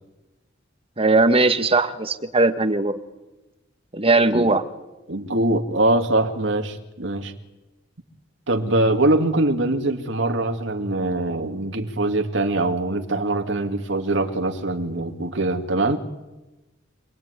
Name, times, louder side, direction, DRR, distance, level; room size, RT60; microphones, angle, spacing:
voice 1, 1.0-2.9 3.9-4.6, right 3 dB, 30° right, 8 dB, 1.5 m, -19 dB
voice 2, 5.1-7.3 8.5-16.0, right 2 dB, 65° right, 5 dB, 2.4 m, -23 dB
26.5 x 20.0 x 9.8 m, 1.0 s
head